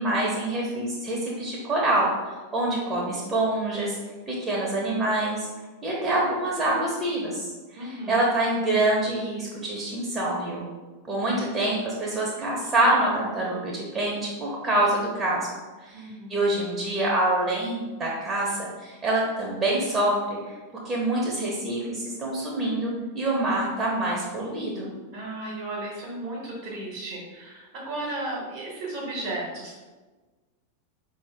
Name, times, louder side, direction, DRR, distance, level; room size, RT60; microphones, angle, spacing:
voice 1, 0.0-2.1 2.5-4.0 4.3-5.5 5.8-10.7 11.1-15.5 15.8-20.5 20.8-24.9, right 1 dB, 20° right, -4 dB, 0.9 m, -26 dB
voice 2, 7.8-8.3 15.9-16.3 25.1-29.8, right 2 dB, 50° right, -4 dB, 1.1 m, -34 dB
4.9 x 2.7 x 3.4 m, 1.3 s
figure-of-eight pair, 90°, 0 cm